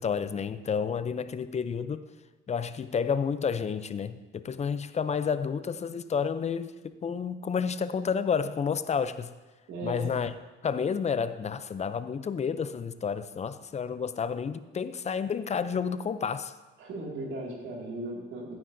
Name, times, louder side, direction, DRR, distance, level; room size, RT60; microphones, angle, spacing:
voice 1, 0.0-2.1 2.5-9.3 9.8-10.3 10.6-16.5, left 6 dB, 35° left, 0.5 m, -30 dB
voice 2, 9.7-10.1 16.8-18.6, right 1 dB, 75° right, 2.3 m, -37 dB
14.0 x 9.4 x 2.7 m
cardioid pair, 90°, 20 cm